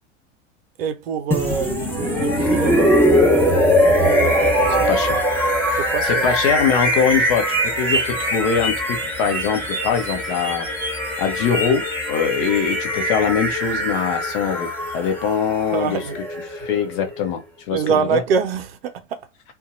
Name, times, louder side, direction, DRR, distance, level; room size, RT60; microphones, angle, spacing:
voice 1, 0.8-2.9 3.3-3.7 4.0-5.0 5.8-6.3 15.7-16.2 17.7-19.2, right 6 dB, 55° right, 0.6 m, -25 dB
sound 1, 1.3-17.2, equal, 5° left, 1.0 m, -21 dB
voice 2, 4.9-5.2 6.0-10.7 11.2-16.0 16.5-17.4 17.7-18.2, left 7 dB, 45° left, 0.8 m, -22 dB
2.6 x 2.3 x 2.5 m
figure-of-eight pair, 85°, 35 cm